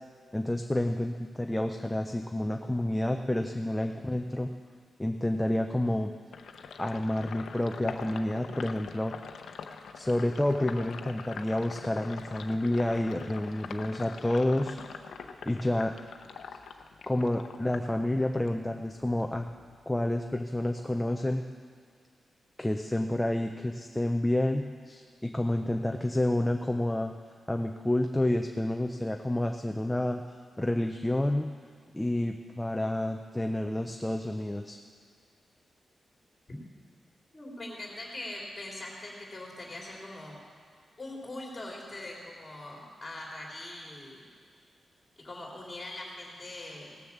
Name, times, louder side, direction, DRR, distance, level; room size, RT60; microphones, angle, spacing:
voice 1, 0.3-4.5 5.0-6.1 6.8-9.1 10.0-14.8 15.4-15.9 17.1-19.5 19.9-21.4 22.6-27.1 27.5-30.2 30.6-31.5 31.9-34.8, left 1 dB, 5° left, 4 dB, 0.5 m, -29 dB
Sink (filling or washing), 6.3-18.6 18.9-20.4, left 5 dB, 75° left, 0.7 m, -44 dB
voice 2, 13.5-13.9 37.3-40.4 41.0-44.3 45.2-47.0, left 1 dB, 25° left, -2 dB, 3.2 m, -42 dB
17.5 x 6.9 x 7.2 m, 2.1 s
wide cardioid pair, 160°, 0 cm